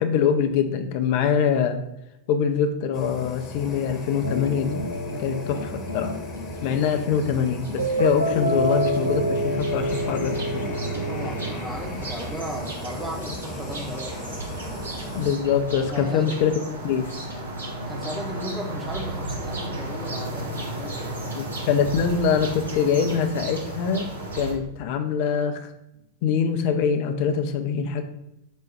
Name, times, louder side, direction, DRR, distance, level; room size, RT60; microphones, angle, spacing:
voice 1, 0.0-1.8 2.3-4.8 5.2-6.2 6.6-10.6 15.1-17.1 21.3-24.1 24.3-25.6 26.2-28.0, left 7 dB, 45° left, 7 dB, 0.5 m, -24 dB
Fire, 2.9-15.4, left 2 dB, 30° left, 1.0 m, -37 dB
sound 1, 4.2-11.5, equal, 90° right, 0.5 m, -28 dB
sound 2, 6.6-6.7 7.0-24.5, right 2 dB, 70° right, 0.8 m, -35 dB
voice 2, 11.1-14.5 15.9-16.3 17.8-21.4, equal, 5° right, 1 dB, 0.8 m, -36 dB
5.1 x 2.3 x 4.6 m, 0.84 s
figure-of-eight pair, 90°, 0 cm